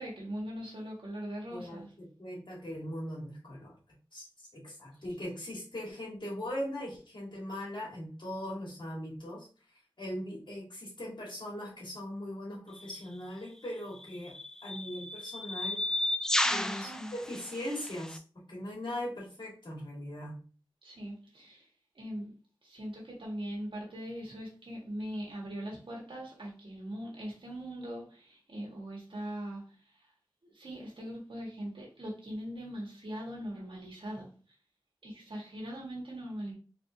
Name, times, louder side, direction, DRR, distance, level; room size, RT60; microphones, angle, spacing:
voice 1, 0.0-1.9 16.4-17.1 20.8-21.7 21.9-22.3 22.6-30.1 30.4-34.3 35.0-36.5, equal, 80° right, -3 dB, 1.8 m, -41 dB
voice 2, 1.5-3.8 4.1-9.5 10.0-16.0 16.5-20.4, left 1 dB, 65° left, -4 dB, 2.0 m, -40 dB
sound 1, 12.8-13.0 14.0-18.2, left 1 dB, 5° left, 0.4 m, -33 dB
4.1 x 3.4 x 2.8 m, 0.38 s
wide cardioid pair, 50°, 9 cm